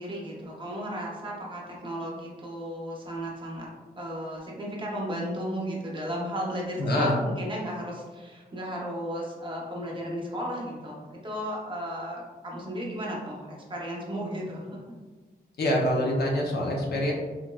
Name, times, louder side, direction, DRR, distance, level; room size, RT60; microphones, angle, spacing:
voice 1, 0.0-3.7 4.0-14.8, equal, 30° right, -3 dB, 0.6 m, -34 dB
voice 2, 6.8-7.2 15.6-17.1, left 1 dB, 85° left, -1 dB, 0.6 m, -25 dB
3.7 x 2.0 x 2.2 m, 1.3 s
wide cardioid pair, 160°, 16 cm